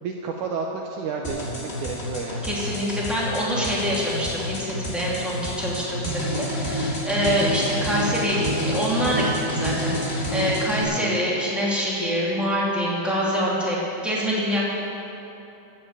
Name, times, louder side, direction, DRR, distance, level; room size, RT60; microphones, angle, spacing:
voice 1, 0.0-2.5 10.5-10.8, right 5 dB, 80° right, 1 dB, 1.8 m, -31 dB
sound 1, 1.2-10.8, equal, 20° left, 1.9 m, -28 dB
voice 2, 2.4-13.8 14.0-14.6, equal, ahead, -6 dB, 1.6 m, -25 dB
13.0 x 7.7 x 8.2 m, 2.9 s
omnidirectional pair, 4.4 m